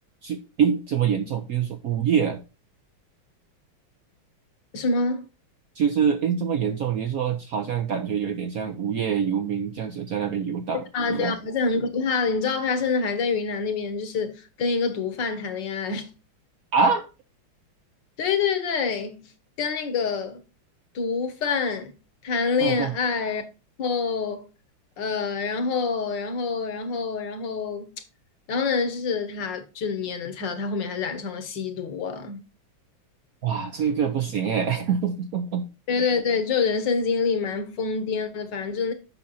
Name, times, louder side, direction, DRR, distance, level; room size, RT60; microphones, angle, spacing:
voice 1, 0.2-2.4 5.7-11.3 16.7-17.1 22.6-22.9 33.4-35.7, right 7 dB, 70° right, 0.8 m, -25 dB
voice 2, 4.7-5.2 10.9-16.1 18.2-19.3 19.6-20.4 20.9-21.9 22.2-23.4 23.8-24.5 25.0-27.9 28.5-32.4 35.9-38.9, left 5 dB, 60° left, 1.8 m, -26 dB
7.6 x 5.8 x 4.1 m
omnidirectional pair, 2.3 m